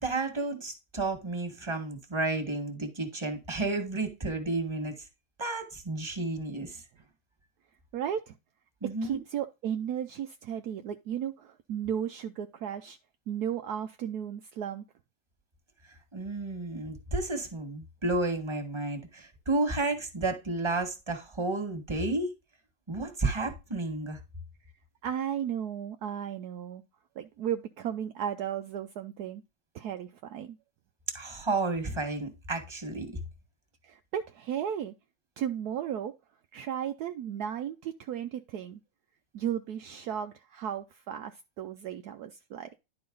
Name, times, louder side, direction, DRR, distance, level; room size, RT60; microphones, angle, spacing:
voice 1, 0.0-5.1 5.4-6.8 8.8-9.2 16.1-22.3 22.9-24.2 31.1-33.1, right 2 dB, 15° right, 1.6 m, -32 dB
voice 2, 7.9-8.4 9.0-13.0 13.3-14.8 25.0-26.8 27.2-29.4 29.7-30.6 33.8-34.9 35.4-36.1 36.5-38.8 39.3-42.7, right 9 dB, 75° right, 0.9 m, -35 dB
11.0 x 4.7 x 3.9 m
omnidirectional pair, 2.3 m